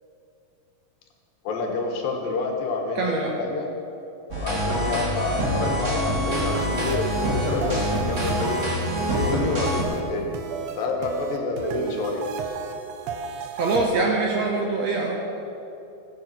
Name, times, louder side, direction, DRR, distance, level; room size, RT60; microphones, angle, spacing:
voice 1, 1.4-3.7 4.4-8.6 9.1-10.3 10.8-12.2, left 3 dB, 80° left, 2 dB, 3.1 m, -28 dB
voice 2, 3.0-3.3 13.6-15.2, right 3 dB, 70° right, 0 dB, 1.7 m, -23 dB
sound 1, 4.3-9.8, equal, 30° right, 1.7 m, -25 dB
sound 2, 6.3-13.9, right 6 dB, 85° right, 1.5 m, -33 dB
17.0 x 7.8 x 5.9 m, 2.8 s
omnidirectional pair, 4.0 m